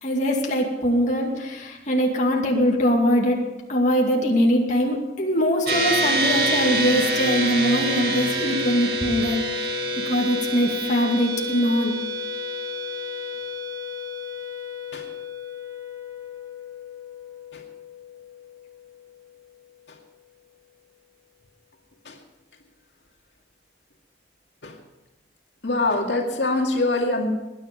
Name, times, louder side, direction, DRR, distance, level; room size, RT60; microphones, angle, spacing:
voice 1, 0.0-3.4 3.7-9.4 10.1-12.0, equal, 45° left, 0 dB, 2.4 m, -22 dB
sound 1, 5.7-19.3, right 1 dB, 65° right, 1.8 m, -28 dB
voice 2, 25.6-27.3, left 2 dB, 85° left, 1 dB, 2.3 m, -23 dB
20.0 x 10.0 x 5.4 m, 1.1 s
head